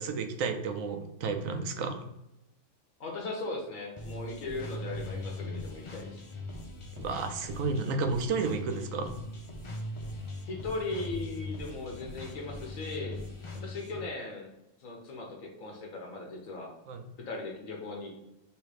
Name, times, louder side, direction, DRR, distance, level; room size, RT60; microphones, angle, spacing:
voice 1, 0.0-2.1 6.9-9.2 16.9-17.0, right 4 dB, 90° right, 7 dB, 1.0 m, -32 dB
voice 2, 3.0-6.2 10.5-13.2 13.5-14.5 14.8-16.7 17.2-18.1, left 2 dB, 85° left, 0 dB, 1.4 m, -38 dB
sound 1, 4.0-14.1, left 2 dB, 35° left, 0.5 m, -40 dB
3.3 x 3.2 x 4.8 m, 0.91 s
omnidirectional pair, 1.4 m